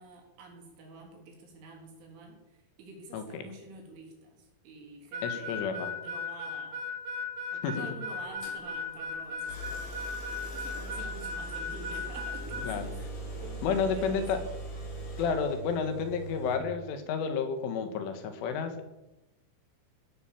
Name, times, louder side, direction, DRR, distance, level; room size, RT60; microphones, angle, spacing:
voice 1, 0.0-6.8 7.5-12.9 13.2-14.3, right 3 dB, 75° right, 1 dB, 6.0 m, -48 dB
voice 2, 3.1-3.4 5.2-5.9 7.6-7.9 12.6-12.9 13.6-14.4 15.2-18.8, left 6 dB, 85° left, 8 dB, 4.3 m, -31 dB
Harmonica, 5.1-12.7, left 3 dB, 55° right, 3.7 m, -36 dB
sound 1, 8.4-8.6 9.4-16.6, right 2 dB, 50° left, 6.4 m, -40 dB
16.5 x 11.5 x 7.4 m, 1.0 s
omnidirectional pair, 5.5 m